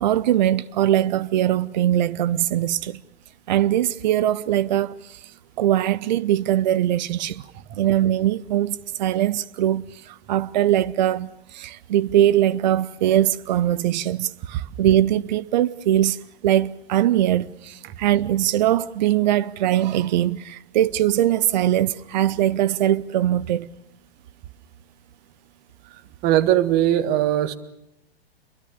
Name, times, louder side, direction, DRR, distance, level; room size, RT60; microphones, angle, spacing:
voice 1, 0.0-3.0 3.5-5.3 5.6-7.4 7.8-23.7, right 12 dB, 45° right, 0.8 m, -21 dB
voice 2, 26.2-27.5, right 12 dB, 30° right, 1.7 m, -19 dB
28.5 x 22.5 x 6.7 m
figure-of-eight pair, 110°, 31 cm